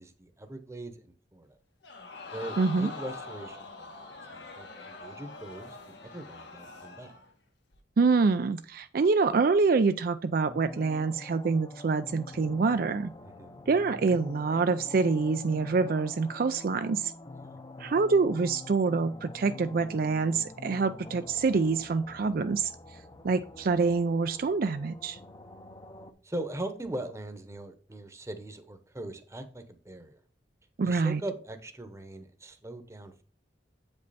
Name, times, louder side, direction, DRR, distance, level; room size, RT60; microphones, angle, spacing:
voice 1, 0.0-1.6 2.3-7.1 13.2-13.6 17.4-17.6 26.2-30.2 30.8-33.2, right 1 dB, 15° right, 0.9 m, -41 dB
Crowd, 1.8-7.3 7.7-7.8, left 3 dB, 75° left, 1.7 m, -44 dB
voice 2, 2.6-2.9 8.0-13.1 13.7-17.1 17.8-22.7 23.2-25.2 30.8-31.2, right 4 dB, 55° right, 0.4 m, -26 dB
sound 1, 10.4-26.1, left 2 dB, 25° left, 0.6 m, -46 dB
8.0 x 5.3 x 4.1 m
head